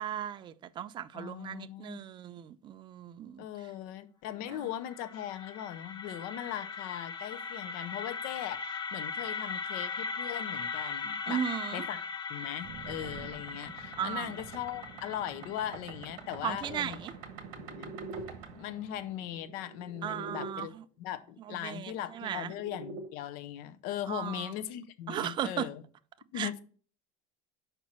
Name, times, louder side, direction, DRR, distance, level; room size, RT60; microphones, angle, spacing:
voice 1, 0.0-3.5 4.5-4.7 11.3-11.9 14.0-14.3 16.4-17.1 20.0-20.8 21.4-22.5 24.1-24.5 25.1-25.7 26.3-26.6, right 10 dB, 30° right, 0.4 m, -36 dB
voice 2, 1.1-2.0 3.4-11.4 11.7-12.0 12.3-17.0 17.6-17.9 18.5-20.7 21.0-25.8 26.3-26.6, left 11 dB, 60° left, 0.7 m, -39 dB
sound 1, 4.6-16.6, left 5 dB, 25° left, 0.7 m, -39 dB
sound 2, 12.6-20.5 21.8-23.1, right 4 dB, 75° right, 1.3 m, -45 dB
5.4 x 4.4 x 6.1 m
cardioid pair, 140°, 17 cm